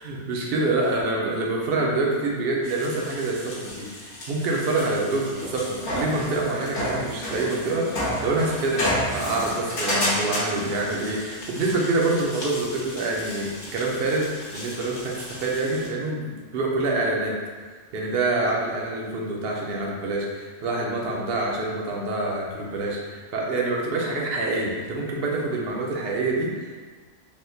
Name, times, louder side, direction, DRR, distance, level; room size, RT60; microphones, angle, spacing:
voice 1, 0.0-7.9 8.2-17.4 17.9-26.9, right 2 dB, 60° right, -2 dB, 0.7 m, -26 dB
sound 1, 2.6-15.9, left 1 dB, 55° left, 0.9 m, -32 dB
3.5 x 2.5 x 2.6 m, 1.5 s
omnidirectional pair, 1.3 m